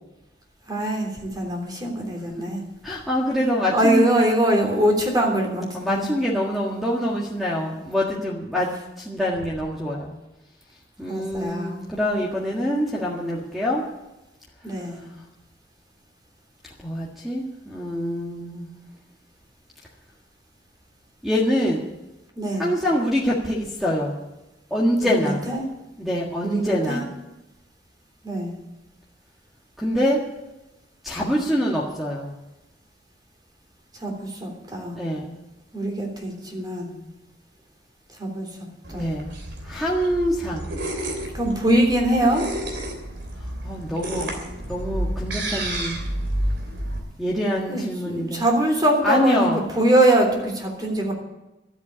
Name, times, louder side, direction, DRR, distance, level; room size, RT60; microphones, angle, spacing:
voice 1, 0.7-2.6 3.7-6.1 11.1-11.8 14.6-15.0 22.4-22.7 25.1-25.6 26.4-27.0 28.2-28.5 34.0-34.9 35.7-36.9 38.2-39.1 41.3-42.4 47.7-51.1, right 1 dB, 25° right, 1 dB, 3.4 m, -23 dB
voice 2, 2.8-4.2 5.7-8.7 9.0-10.2 11.0-13.9 16.8-18.8 21.2-21.9 22.6-24.2 24.7-25.4 26.0-27.1 29.8-30.2 31.0-32.3 34.9-35.4 38.9-39.3 39.6-40.7 43.6-44.3 44.7-46.0 47.2-48.4 49.0-49.6, equal, ahead, -3 dB, 1.7 m, -25 dB
sound 1, 38.8-47.0, right 1 dB, 85° right, 3.1 m, -30 dB
13.0 x 8.2 x 9.6 m, 0.97 s
head